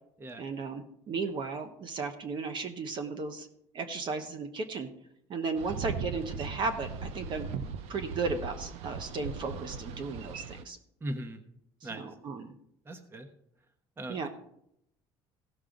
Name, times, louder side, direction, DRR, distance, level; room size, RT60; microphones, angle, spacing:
voice 1, 0.4-3.5 3.7-4.9 5.3-7.5 7.9-10.8 11.8-12.5 14.1-14.3, right 4 dB, 45° right, 8 dB, 1.0 m, -35 dB
Boat Water vehicle, 5.6-10.6, right 5 dB, 75° right, 0.8 m, -39 dB
voice 2, 11.0-11.4 11.8-12.0 12.9-13.3 14.0-14.3, right 1 dB, 20° right, 8 dB, 1.1 m, -38 dB
16.0 x 6.5 x 3.8 m, 0.75 s
cardioid pair, 125°, 11 cm